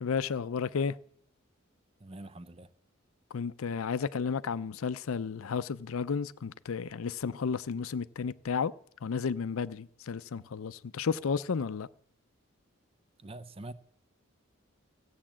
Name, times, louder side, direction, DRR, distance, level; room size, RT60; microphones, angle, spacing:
voice 1, 0.0-1.0 3.3-8.7 9.0-11.9, left 5 dB, 80° left, 0.5 m, -32 dB
voice 2, 2.0-2.7 13.2-13.7, right 2 dB, 25° right, 0.5 m, -45 dB
15.0 x 8.7 x 7.4 m
head